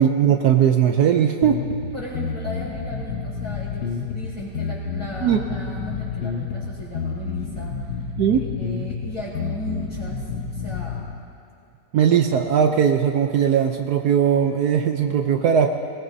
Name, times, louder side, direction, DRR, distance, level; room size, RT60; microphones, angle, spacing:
voice 1, 0.0-1.6 5.2-5.4 8.2-8.4 11.9-15.7, right 8 dB, 70° right, 4 dB, 1.1 m, -19 dB
sound 1, 1.4-11.0, left 5 dB, 80° left, 1.7 m, -29 dB
voice 2, 1.9-8.1 8.4-11.1, left 1 dB, 15° left, -13 dB, 4.2 m, -36 dB
21.5 x 20.0 x 2.7 m, 2.7 s
omnidirectional pair, 1.9 m